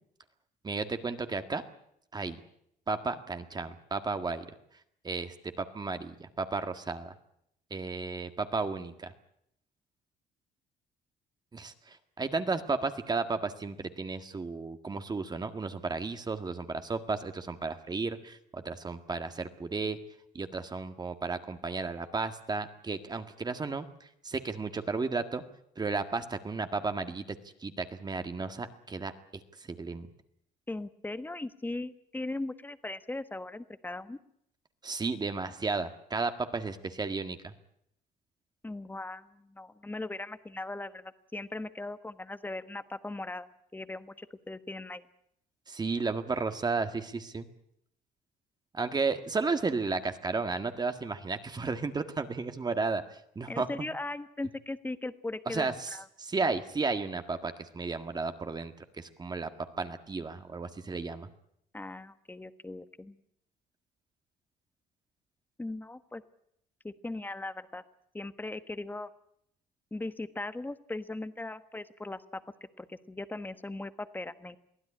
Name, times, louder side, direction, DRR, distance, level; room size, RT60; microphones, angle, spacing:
voice 1, 0.6-1.6 2.1-2.4 2.9-4.4 5.0-7.1 7.7-9.1 11.5-20.0 20.3-25.4 25.8-27.2 27.6-29.1 29.6-30.1 34.8-37.5 45.7-47.5 48.7-53.7 55.4-55.9 56.2-59.5 59.8-61.3, right 4 dB, 25° right, 8 dB, 1.8 m, -33 dB
voice 2, 30.7-34.2 38.6-45.1 53.5-56.1 61.7-63.2 65.6-66.2 66.8-67.8 68.1-69.1 69.9-72.4 72.8-74.6, left 2 dB, 10° left, 12 dB, 1.3 m, -39 dB
23.5 x 16.0 x 9.9 m, 0.74 s
cardioid pair, 110°, 17 cm